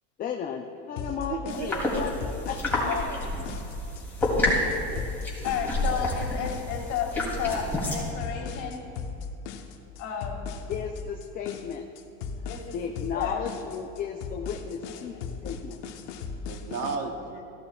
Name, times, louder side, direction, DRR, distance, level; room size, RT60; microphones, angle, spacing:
voice 1, 0.2-2.1 2.4-3.3 4.3-5.1 10.7-11.9 12.4-15.8, left 7 dB, 25° left, 3 dB, 0.4 m, -35 dB
sound 1, 1.0-17.0, left 5 dB, 75° left, 1.0 m, -37 dB
voice 2, 1.1-1.8 5.4-6.0 16.5-17.5, right 5 dB, 45° right, 4 dB, 1.1 m, -35 dB
sound 2, 1.5-8.1, left 1 dB, 5° left, 2.7 m, -29 dB
voice 3, 5.4-8.8 10.0-10.5 12.5-12.8 13.1-13.4 14.9-15.0, left 7 dB, 55° left, 1 dB, 2.0 m, -32 dB
15.0 x 11.5 x 2.3 m, 2.9 s
supercardioid pair, 140°, 34 cm